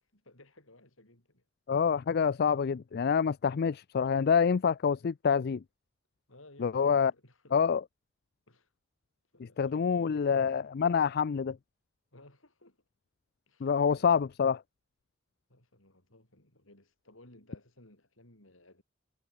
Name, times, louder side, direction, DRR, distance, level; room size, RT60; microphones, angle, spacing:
voice 1, 0.0-1.4 6.3-7.6 8.5-8.7 9.3-10.5 12.1-12.8 13.5-14.2 15.5-18.8, left 1 dB, 70° left, 6.6 m, -58 dB
voice 2, 1.7-5.6 6.6-7.1 7.5-7.8 9.6-11.6 13.6-14.6, left 6 dB, 50° left, 0.4 m, -27 dB
head